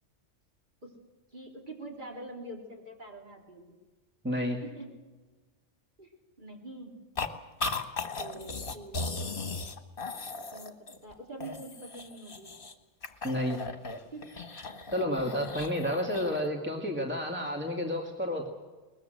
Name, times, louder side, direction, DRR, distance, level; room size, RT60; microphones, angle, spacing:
voice 1, 1.3-3.6 4.6-4.9 6.0-6.1 6.4-7.0 8.2-9.7 10.5-10.7 11.0-12.5 14.1-14.3 15.0-15.1 15.9-16.3, right 1 dB, 40° right, 1 dB, 3.8 m, -45 dB
voice 2, 4.2-4.6 13.2-13.6 14.9-18.5, left 1 dB, 10° right, 2 dB, 2.3 m, -30 dB
sound 1, 7.2-7.3 7.6-11.1 11.4-12.7 13.0-16.5, left 3 dB, 45° left, 1.8 m, -37 dB
21.5 x 20.5 x 7.8 m, 1.3 s
omnidirectional pair, 1.3 m